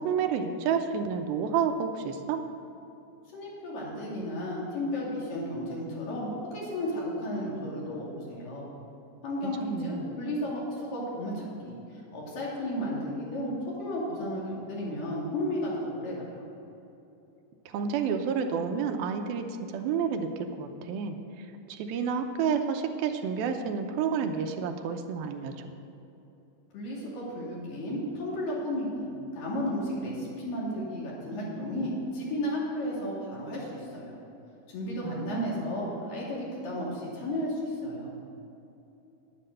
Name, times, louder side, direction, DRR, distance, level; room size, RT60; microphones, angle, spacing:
voice 1, 0.0-2.4 9.6-10.1 17.7-25.7 35.0-35.7, right 6 dB, 85° right, 6 dB, 2.6 m, -30 dB
voice 2, 3.3-8.6 9.2-11.8 12.1-13.5 13.8-16.3 26.7-34.1 34.7-38.1, left 1 dB, 65° left, -5 dB, 4.2 m, -33 dB
10.0 x 9.7 x 6.6 m, 2.9 s
omnidirectional pair, 4.2 m